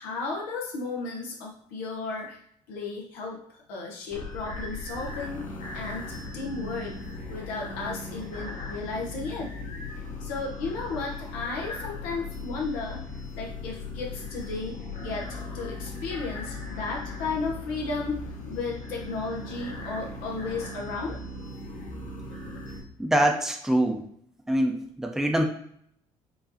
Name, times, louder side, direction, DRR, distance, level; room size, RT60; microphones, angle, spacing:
voice 1, 0.0-2.4 2.7-5.5 5.7-6.9 7.3-9.5 10.2-13.0 13.3-21.2, left 3 dB, 80° left, -2 dB, 0.7 m, -34 dB
sound 1, 4.1-22.8, left 2 dB, 55° left, 1.1 m, -38 dB
voice 2, 23.0-24.0 24.5-25.4, right 1 dB, 5° right, 2 dB, 0.6 m, -24 dB
4.9 x 2.4 x 2.7 m, 0.66 s
hypercardioid pair, 60°, 15 cm